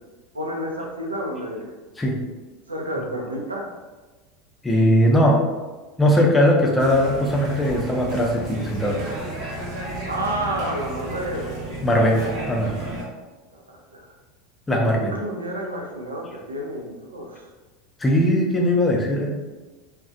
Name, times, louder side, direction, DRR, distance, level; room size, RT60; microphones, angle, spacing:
voice 1, 0.3-1.7 2.7-3.7 10.0-11.4 13.5-14.1 15.0-17.5, right 1 dB, 80° right, 0 dB, 0.4 m, -30 dB
voice 2, 4.6-5.4 6.0-9.0 11.8-12.8 14.7-15.1 18.0-19.4, equal, 15° left, -1 dB, 0.5 m, -19 dB
sound 1, 6.8-13.0, right 2 dB, 50° right, 0.7 m, -33 dB
2.4 x 2.1 x 2.5 m, 1.2 s
figure-of-eight pair, 80°, 0 cm